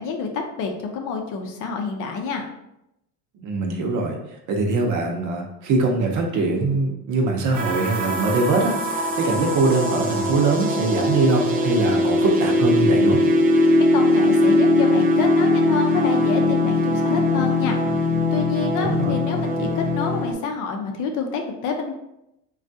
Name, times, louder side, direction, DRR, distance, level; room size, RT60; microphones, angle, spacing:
voice 1, 0.0-2.5 13.9-17.8 18.3-21.9, left 5 dB, 55° left, 3 dB, 0.6 m, -28 dB
voice 2, 3.4-4.2 4.5-13.2 18.8-19.1, right 3 dB, 50° right, 1 dB, 0.7 m, -22 dB
sound 1, 7.5-20.3, left 2 dB, 25° right, 0.4 m, -20 dB
3.4 x 2.3 x 2.6 m, 0.84 s
cardioid pair, 120°, 38 cm